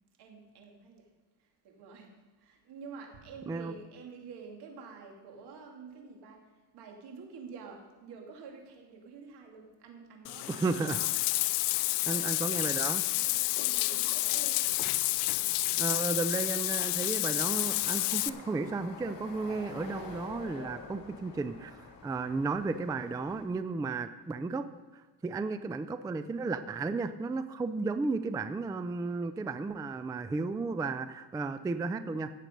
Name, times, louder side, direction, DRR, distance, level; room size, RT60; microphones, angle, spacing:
voice 1, 0.2-1.1 1.6-2.1 2.4-6.4 6.7-11.6 12.0-12.4 13.2-14.7, right 5 dB, 70° right, 2 dB, 2.7 m, -48 dB
Bathtub (filling or washing), 10.2-18.3, left 18 dB, 75° left, 0.5 m, -30 dB
voice 2, 10.5-11.0 12.1-13.1 15.8-24.7 24.9-32.3, right 3 dB, 10° right, 11 dB, 0.3 m, -34 dB
sound 1, 17.4-23.5, left 5 dB, 55° left, 2.4 m, -47 dB
16.0 x 7.5 x 5.3 m, 1.3 s
cardioid pair, 125°, 41 cm